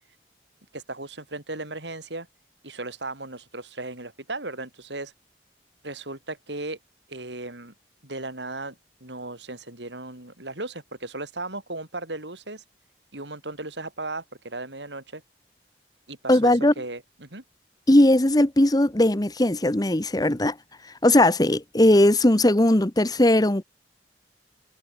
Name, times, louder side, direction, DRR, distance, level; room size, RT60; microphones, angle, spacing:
voice 1, 0.7-2.3 2.6-5.1 5.8-6.8 7.1-7.7 8.0-8.8 9.0-12.6 13.1-15.2 16.1-17.4, right 2 dB, 90° right, 7.9 m, -36 dB
voice 2, 16.3-16.7 17.9-20.5 21.0-23.6, left 1 dB, 20° left, 1.1 m, -19 dB
head